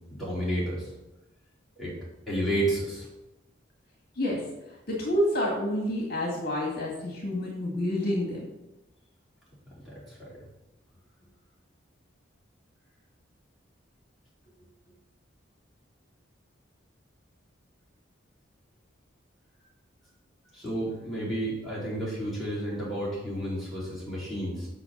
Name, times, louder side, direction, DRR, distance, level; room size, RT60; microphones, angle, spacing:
voice 1, 0.1-0.9 1.8-1.9 2.3-3.1 9.8-10.4 20.5-24.7, right 1 dB, ahead, -9 dB, 4.1 m, -31 dB
voice 2, 4.9-8.5, left 1 dB, 50° left, -2 dB, 2.1 m, -28 dB
7.7 x 6.0 x 7.3 m, 0.97 s
head